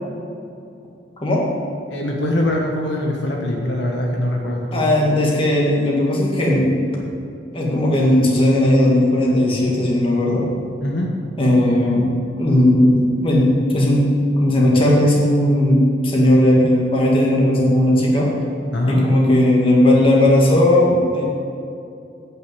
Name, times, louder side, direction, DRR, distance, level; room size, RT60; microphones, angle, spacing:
voice 1, 1.9-4.7 10.8-11.1 18.7-19.0, left 1 dB, 70° left, -1 dB, 1.3 m, -22 dB
voice 2, 4.7-6.7 7.5-10.5 11.4-14.1 14.4-18.3 18.9-21.2, left 1 dB, 30° left, -3 dB, 1.9 m, -16 dB
8.6 x 6.4 x 7.8 m, 2.6 s
head